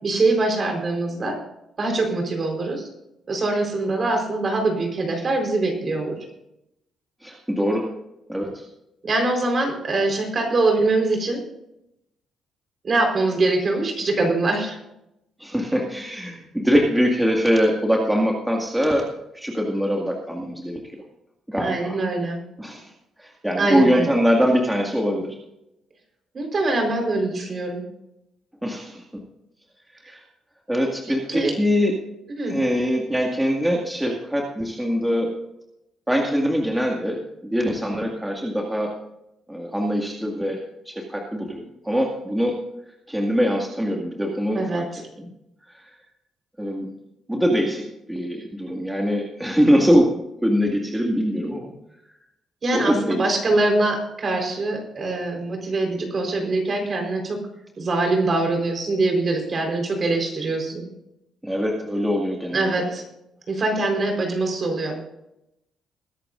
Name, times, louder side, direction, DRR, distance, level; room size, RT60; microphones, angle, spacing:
voice 1, 0.0-1.4 1.8-2.9 3.3-6.2 9.0-11.4 12.8-14.8 21.6-22.4 23.6-24.1 26.3-27.8 31.1-31.5 32.3-32.6 44.5-45.0 52.6-57.4 57.8-60.8 62.5-63.0 63.5-64.9, right 2 dB, 40° right, 2 dB, 4.3 m, -23 dB
voice 2, 7.2-7.9 8.3-8.6 15.4-19.1 19.3-20.8 21.5-22.0 22.6-22.8 23.2-25.4 28.6-29.2 30.0-30.2 30.7-31.9 32.5-35.3 36.1-37.2 37.5-38.9 39.5-42.6 43.1-44.9 45.2-45.3 45.7-45.8 46.6-46.9 47.3-47.8 48.1-50.1 50.4-51.7 52.7-53.2 61.4-62.8, equal, 5° right, -1 dB, 2.1 m, -23 dB
21.0 x 11.0 x 2.6 m, 0.84 s
cardioid pair, 90°, 0 cm